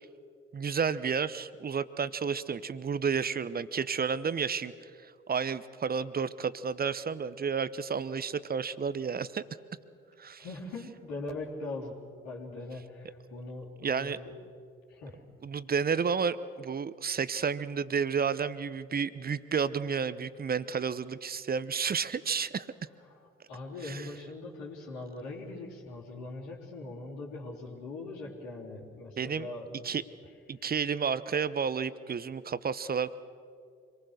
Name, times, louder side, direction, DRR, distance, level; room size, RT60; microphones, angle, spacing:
voice 1, 0.5-9.4 10.2-10.4 13.8-14.2 15.4-22.7 23.8-24.1 29.2-29.5 29.8-30.0 30.5-33.2, right 6 dB, 30° right, 16 dB, 0.9 m, -31 dB
voice 2, 10.4-11.9 12.2-14.4 14.9-15.2 23.1-23.2 23.5-29.8 30.6-30.7, left 2 dB, 70° left, -4 dB, 3.6 m, -41 dB
25.5 x 19.5 x 6.6 m, 2.3 s
figure-of-eight pair, 45°, 30 cm